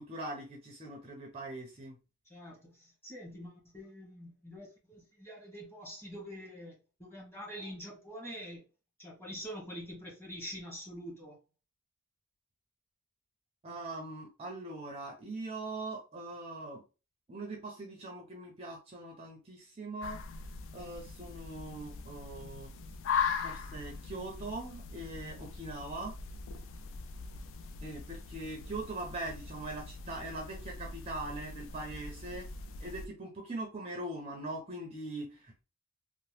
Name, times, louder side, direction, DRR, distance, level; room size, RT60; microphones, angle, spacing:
voice 1, 0.0-2.0 13.6-16.8 17.3-20.2 20.7-22.7 23.4-26.1 27.8-32.5 32.8-35.6, right 2 dB, 25° right, 0.5 m, -41 dB
voice 2, 2.3-6.7 7.0-8.6 9.0-11.4, equal, 10° left, 1.1 m, -45 dB
sound 1, 20.0-33.1, left 5 dB, 60° left, 0.3 m, -40 dB
2.8 x 2.0 x 3.2 m
head